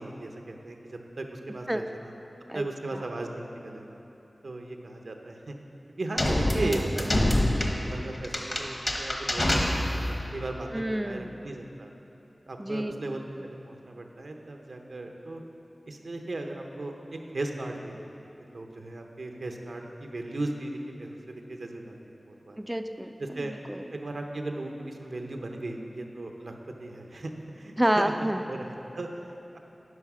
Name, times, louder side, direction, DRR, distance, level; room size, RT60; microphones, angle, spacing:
voice 1, 0.0-2.2 2.5-4.0 4.4-5.5 6.0-7.2 7.5-9.7 10.3-11.9 12.5-15.4 15.9-18.0 18.5-22.6 23.2-23.5 23.9-26.5 26.8-27.3 27.6-28.1 28.5-29.6, right 2 dB, 85° right, 3 dB, 0.8 m, -37 dB
sound 1, 6.2-10.3, left 1 dB, 40° left, 1.0 m, -26 dB
voice 2, 10.7-11.4 12.6-12.9 22.6-23.1 23.5-23.9 27.8-28.4, right 1 dB, 15° right, 7 dB, 0.3 m, -28 dB
9.6 x 5.6 x 6.1 m, 2.9 s
wide cardioid pair, 65°, 0 cm